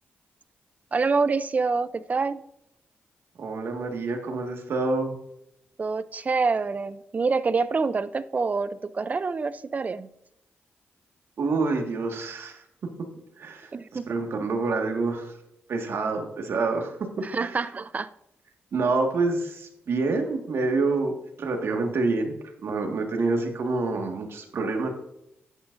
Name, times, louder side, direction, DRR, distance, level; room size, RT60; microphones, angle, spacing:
voice 1, 0.9-2.4 5.8-10.1 13.7-14.1 17.2-18.1, right 4 dB, 35° right, 0.5 m, -26 dB
voice 2, 3.4-5.2 11.4-12.6 13.4-13.7 14.1-15.3 15.7-17.1 17.4-17.7 18.7-21.1 21.4-22.3 22.6-24.9, right 3 dB, 65° right, 1.7 m, -27 dB
11.5 x 9.1 x 2.6 m
cardioid pair, 85°, 4 cm